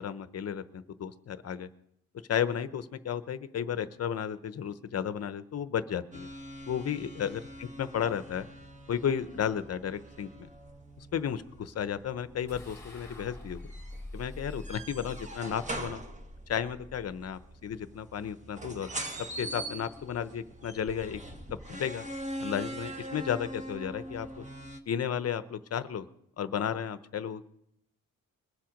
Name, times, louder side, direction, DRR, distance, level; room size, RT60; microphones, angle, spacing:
voice 1, 0.0-1.7 2.3-6.3 6.7-8.5 8.9-10.5 11.0-13.7 14.1-16.0 16.5-18.9 19.4-21.2 21.7-22.1 22.4-24.4 24.9-26.1 26.4-27.5, left 8 dB, 45° left, 12 dB, 0.8 m, -33 dB
sound 1, 6.1-24.8, right 1 dB, 20° right, 1.3 m, -43 dB
sound 2, 12.5-17.8, left 1 dB, 10° left, 2.2 m, -46 dB
22.0 x 7.6 x 5.2 m, 0.75 s
wide cardioid pair, 160°, 34 cm